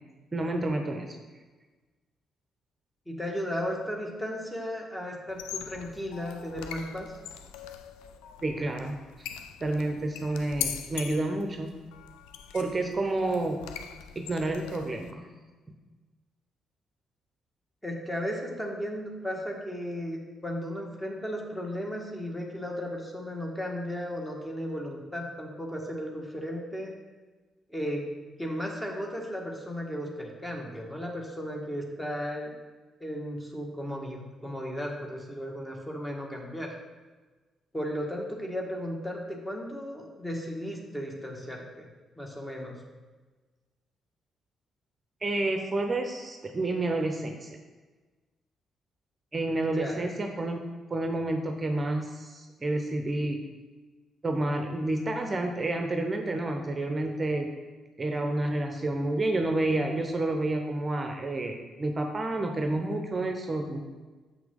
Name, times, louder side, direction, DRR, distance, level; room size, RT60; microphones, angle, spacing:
voice 1, 0.3-1.2 8.4-9.3 9.6-11.8 12.5-13.6 14.1-15.3 45.2-47.6 49.3-50.6 50.9-53.4 54.2-57.5 58.0-63.8, right 2 dB, 30° right, 4 dB, 0.8 m, -29 dB
voice 2, 3.1-7.1 17.8-26.9 27.7-28.1 28.4-32.5 33.0-36.7 37.7-41.9 42.2-42.8 49.6-50.0, equal, 15° left, -1 dB, 1.8 m, -35 dB
sound 1, 5.3-15.1, left 9 dB, 70° left, 0.4 m, -41 dB
6.8 x 5.9 x 3.8 m, 1.3 s
figure-of-eight pair, 40°, 0 cm